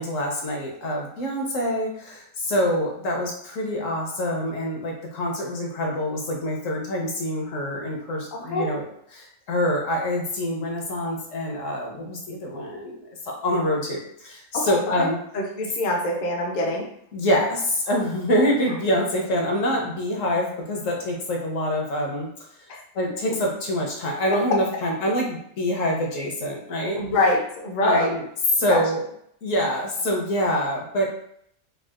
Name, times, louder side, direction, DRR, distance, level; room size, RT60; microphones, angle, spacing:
voice 1, 0.0-8.9 9.1-15.2 17.1-22.3 22.9-27.0 27.8-28.3 28.6-29.0 29.4-31.1, equal, 70° left, -1 dB, 1.1 m, -25 dB
voice 2, 8.3-8.7 14.5-16.9 22.7-22.8 24.5-24.6 27.0-28.1 28.7-28.8, left 2 dB, 55° left, 0 dB, 0.5 m, -25 dB
3.6 x 2.3 x 2.4 m, 0.69 s
omnidirectional pair, 1.5 m